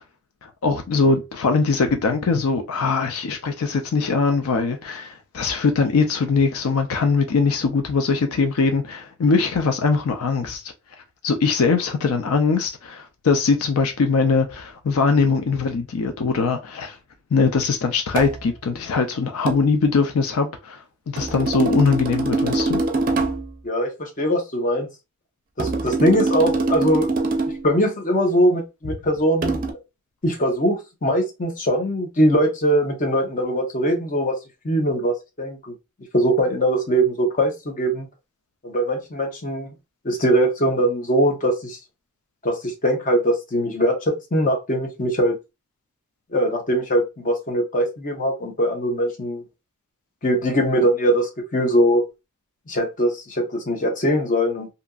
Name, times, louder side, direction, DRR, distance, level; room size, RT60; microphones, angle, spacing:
voice 1, 0.4-10.7 11.2-17.0 17.3-22.8, left 4 dB, 75° left, 0.4 m, -21 dB
sound 1, 18.2-18.4 19.5-19.7 21.2-23.5 25.6-27.7 29.4-29.7, right 3 dB, 40° right, 0.5 m, -23 dB
voice 2, 23.6-24.9 25.6-27.1 27.6-29.6 30.2-34.3 34.6-35.7 36.1-38.1 38.6-39.7 40.0-41.8 42.4-45.4 46.3-49.4 50.2-52.0 52.7-54.7, equal, 35° left, 0.7 m, -21 dB
2.8 x 2.5 x 2.3 m
head